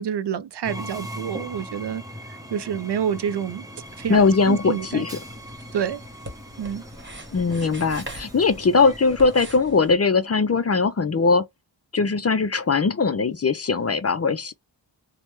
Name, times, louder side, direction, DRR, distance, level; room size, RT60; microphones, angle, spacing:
voice 1, 0.0-2.0 2.3-3.7 4.0-4.2 4.5-5.1 5.7-6.0 6.6-6.8, right 8 dB, 65° right, 0.5 m, -28 dB
Train, 0.6-9.8, equal, 10° right, 0.9 m, -40 dB
sound 1, 3.8-9.9, right 1 dB, 25° right, 1.1 m, -43 dB
voice 2, 4.1-5.2 7.3-11.5 11.9-14.5, left 4 dB, 35° left, 0.4 m, -20 dB
3.2 x 2.1 x 3.0 m
wide cardioid pair, 65°, 44 cm